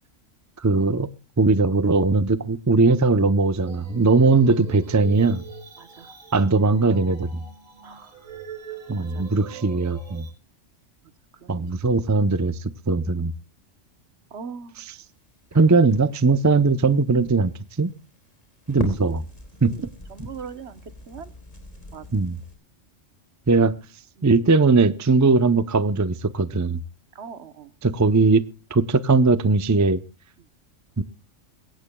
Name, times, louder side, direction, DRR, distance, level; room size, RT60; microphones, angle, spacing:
voice 1, 0.6-1.1 1.4-5.4 6.3-7.4 8.9-10.3 11.5-13.3 14.8-14.9 15.5-17.5 17.8-17.9 18.7-19.2 19.6-19.7 22.1-22.4 23.5-23.7 24.2-26.8 27.8-28.4 28.7-30.0 31.0-31.1, right 3 dB, 25° right, 14 dB, 0.4 m, -19 dB
sound 1, 3.7-10.3, right 4 dB, 80° right, 2.9 m, -41 dB
voice 2, 5.8-6.1 7.8-8.1 9.0-9.2 11.4-11.6 14.3-14.8 19.6-20.8 21.1-21.3 21.9-22.0 24.2-24.3 27.1-27.7, right 6 dB, 60° right, 13 dB, 1.2 m, -40 dB
Crackle, 14.8-22.5, left 1 dB, 30° left, 3.4 m, -41 dB
22.0 x 17.5 x 2.3 m, 0.32 s
omnidirectional pair, 1.3 m